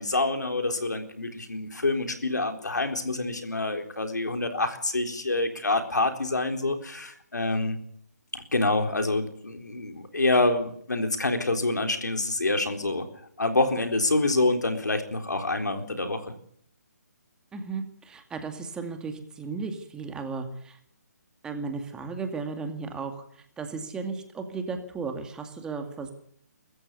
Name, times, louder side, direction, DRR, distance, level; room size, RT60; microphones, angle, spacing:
voice 1, 0.0-7.8 8.3-13.1 13.4-16.3, left 2 dB, 85° left, 6 dB, 3.9 m, -27 dB
voice 2, 17.5-20.8 21.4-26.1, right 4 dB, 10° right, 6 dB, 2.2 m, -35 dB
24.0 x 14.0 x 8.3 m, 0.65 s
figure-of-eight pair, 150°, 9 cm